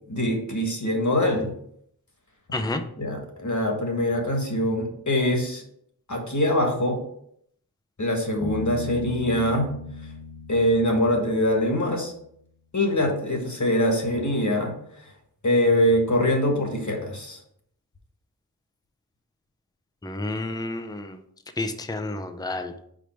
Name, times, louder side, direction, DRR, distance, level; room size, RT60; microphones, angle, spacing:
voice 1, 0.1-1.5 3.0-5.6 6.1-7.0 8.0-9.7 10.5-12.1 12.7-14.7 15.4-17.4, left 1 dB, 50° left, 2 dB, 1.5 m, -23 dB
voice 2, 2.5-2.8 20.0-21.2 21.6-22.7, left 2 dB, 10° left, 7 dB, 0.6 m, -30 dB
Bass guitar, 8.4-11.9, left 2 dB, 75° left, 1.0 m, -36 dB
5.1 x 4.9 x 4.5 m, 0.68 s
wide cardioid pair, 80°, 38 cm